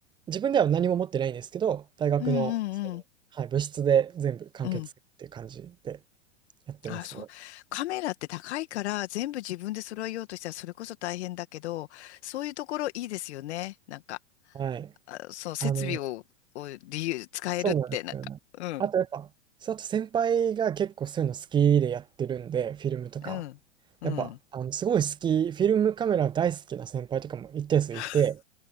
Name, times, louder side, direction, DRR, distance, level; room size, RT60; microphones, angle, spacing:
voice 1, 0.3-2.5 3.4-4.8 5.2-6.0 6.7-7.3 14.6-14.9 15.6-16.0 17.6-18.3 18.8-19.3 19.6-23.4 24.0-28.4, right 8 dB, 15° right, 0.4 m, -27 dB
voice 2, 2.2-3.0 4.6-4.9 6.8-14.2 15.1-16.2 16.5-18.1 18.5-18.9 23.2-23.6 24.0-24.4 27.9-28.2, left 16 dB, 65° left, 2.1 m, -34 dB
hypercardioid pair, 105°, 35 cm